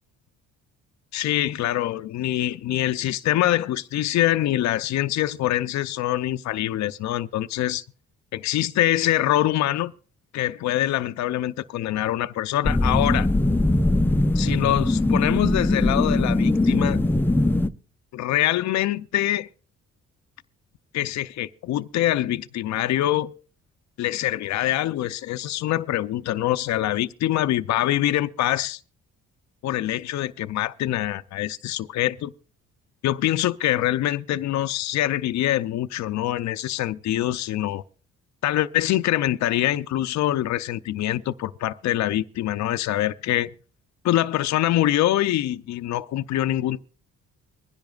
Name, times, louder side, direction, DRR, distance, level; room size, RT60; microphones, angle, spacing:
voice 1, 1.1-7.8 8.3-9.9 10.3-13.3 14.3-17.0 18.1-19.5 20.9-23.3 24.0-28.8 29.6-32.3 33.0-37.8 38.4-43.5 44.0-46.8, left 13 dB, 65° left, 0.5 m, -24 dB
sound 1, 12.6-17.7, left 2 dB, 5° left, 0.5 m, -21 dB
24.0 x 10.5 x 2.4 m
cardioid pair, 90°, 30 cm